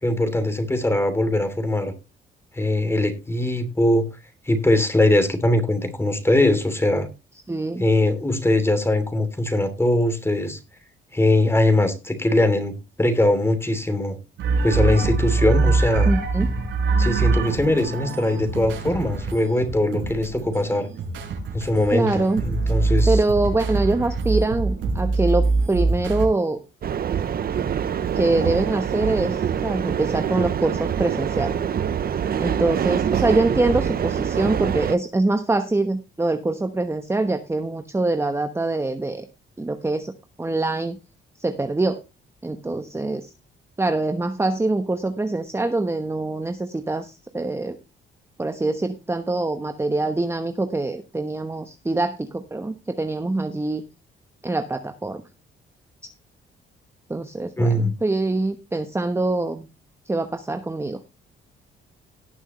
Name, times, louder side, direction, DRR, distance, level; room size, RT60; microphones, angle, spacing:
voice 1, 0.0-1.9 2.5-4.0 4.5-7.1 7.8-10.6 11.1-12.7 13.0-14.2 14.6-16.1 17.0-20.9 21.5-23.2 57.6-57.9, left 1 dB, 10° left, 9 dB, 2.9 m, -21 dB
voice 2, 7.5-7.8 16.0-16.5 21.9-22.4 23.1-26.6 28.2-31.6 32.4-39.3 39.6-40.1 40.4-41.0 41.4-42.0 42.4-43.3 43.8-47.8 48.4-53.8 54.4-55.2 57.1-59.7 60.1-61.0, right 2 dB, 15° right, 7 dB, 1.1 m, -24 dB
sound 1, 14.4-26.3, right 3 dB, 85° right, 5.2 m, -23 dB
sound 2, 26.8-35.0, right 8 dB, 50° right, 0.9 m, -25 dB
18.0 x 6.2 x 3.1 m, 0.27 s
cardioid pair, 90°, 20 cm